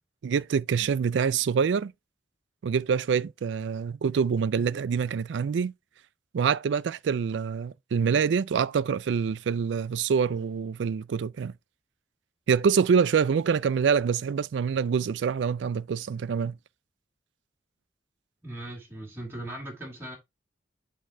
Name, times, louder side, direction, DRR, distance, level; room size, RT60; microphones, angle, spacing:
voice 1, 0.2-1.9 2.6-5.7 6.3-11.5 12.5-16.6, right 6 dB, 80° right, 0.4 m, -25 dB
voice 2, 18.4-20.2, right 1 dB, 15° right, 2.5 m, -39 dB
8.4 x 3.8 x 4.3 m
head